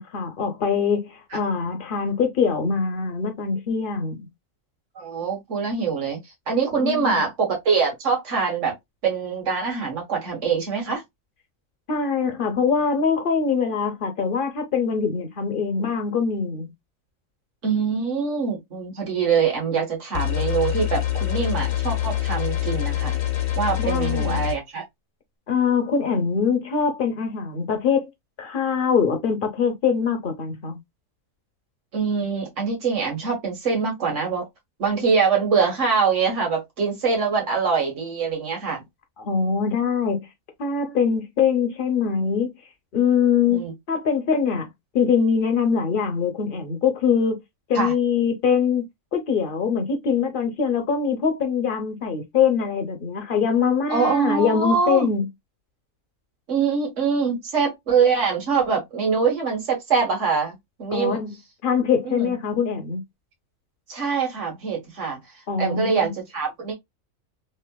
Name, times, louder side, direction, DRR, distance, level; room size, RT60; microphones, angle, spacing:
voice 1, 0.0-4.3 6.8-7.2 11.9-16.7 23.8-24.4 25.5-28.1 28.4-30.8 39.2-40.3 40.6-42.5 42.9-44.7 44.9-47.4 47.7-48.8 49.1-55.3 60.9-61.3 61.6-63.0 65.5-66.1, left 6 dB, 45° left, 0.9 m, -23 dB
voice 2, 4.9-6.2 6.5-8.8 9.0-11.0 17.6-23.2 23.6-24.8 31.9-34.4 34.8-38.8 43.5-43.7 47.7-47.9 53.9-55.1 56.5-61.2 62.0-62.3 63.9-65.2 65.6-66.7, right 5 dB, 65° right, 1.7 m, -24 dB
sound 1, 20.1-24.5, left 13 dB, 80° left, 1.3 m, -25 dB
3.3 x 2.8 x 2.2 m
omnidirectional pair, 1.4 m